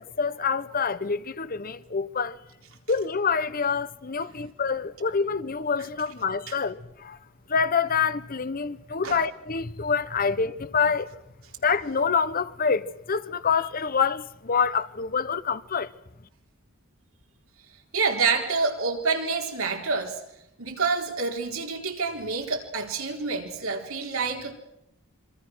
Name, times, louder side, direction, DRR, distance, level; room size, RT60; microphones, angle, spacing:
voice 1, 0.0-2.4 2.9-7.2 7.5-11.1 11.6-15.9, left 5 dB, 45° left, 0.9 m, -26 dB
voice 2, 17.9-20.2 20.6-24.5, right 4 dB, 80° right, 3.9 m, -27 dB
27.0 x 25.0 x 6.2 m
head